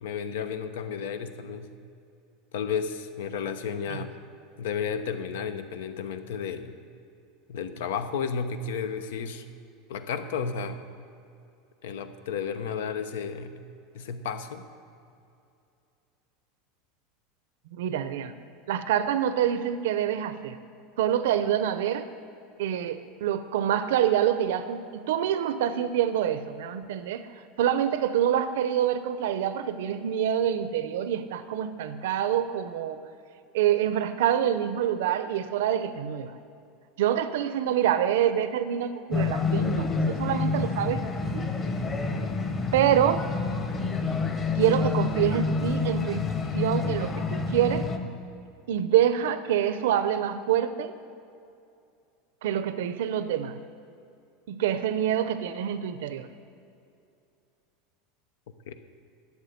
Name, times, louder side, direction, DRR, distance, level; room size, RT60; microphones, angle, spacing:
voice 1, 0.0-1.7 2.5-4.1 4.6-6.7 7.5-9.4 9.9-10.8 11.8-13.6 13.9-14.6 58.7-58.8, left 6 dB, 90° left, 9 dB, 1.0 m, -32 dB
voice 2, 17.7-18.3 18.7-20.6 21.0-22.1 22.6-27.3 27.6-33.0 33.5-36.3 37.0-41.0 41.3-41.5 42.7-43.3 44.5-46.3 46.5-47.9 48.7-51.0 52.4-53.6 54.5-56.3, right 10 dB, 85° right, 12 dB, 0.7 m, -26 dB
sound 1, 39.1-48.0, left 4 dB, 20° left, 1.0 m, -28 dB
12.0 x 7.4 x 9.4 m, 2.6 s
supercardioid pair, 160°, 0 cm